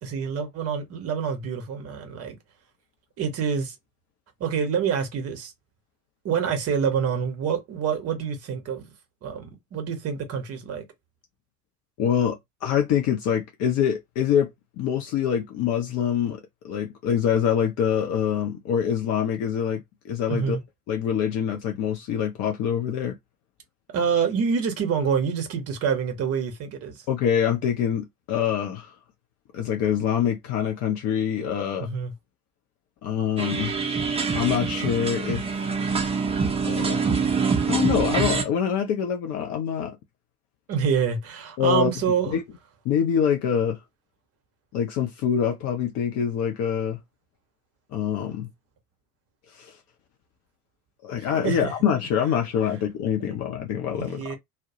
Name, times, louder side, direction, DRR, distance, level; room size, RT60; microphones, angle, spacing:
voice 1, 0.0-2.4 3.2-3.7 4.4-5.5 6.2-8.9 9.2-10.8 20.3-20.6 23.9-27.1 31.8-32.1 40.7-42.3 51.2-51.7 53.2-53.3 53.9-54.4, right 6 dB, 30° right, 0.8 m, -27 dB
voice 2, 12.0-14.5 14.8-16.4 16.6-20.6 20.9-23.1 27.1-29.0 29.5-31.9 33.0-33.8 34.3-35.6 36.6-37.1 37.6-40.0 41.6-41.9 42.3-42.4 42.8-43.8 44.7-47.0 47.9-48.5 49.5-49.8 51.0-54.4, left 8 dB, 35° left, 0.5 m, -25 dB
sound 1, 33.4-38.4, right 5 dB, 15° right, 0.5 m, -25 dB
2.2 x 2.0 x 2.8 m
figure-of-eight pair, 70°, 46 cm